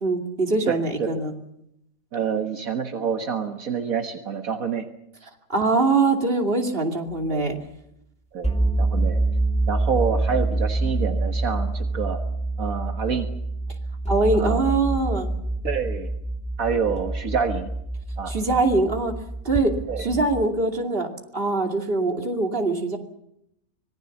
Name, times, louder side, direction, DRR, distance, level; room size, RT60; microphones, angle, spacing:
voice 1, 0.0-1.3 5.5-7.6 14.1-15.3 18.3-19.1 19.4-21.1 21.3-23.0, right 3 dB, 40° right, 3 dB, 2.8 m, -23 dB
voice 2, 0.7-1.1 2.1-4.9 7.3-7.4 8.3-9.2 9.7-12.2 12.6-13.3 14.3-14.7 15.6-16.1 16.6-17.7 18.2-18.3 19.9-20.1, right 6 dB, 70° right, 5 dB, 1.9 m, -27 dB
sound 1, 8.4-20.5, right 2 dB, 5° left, 2.8 m, -26 dB
25.5 x 19.5 x 7.2 m, 0.79 s
omnidirectional pair, 1.5 m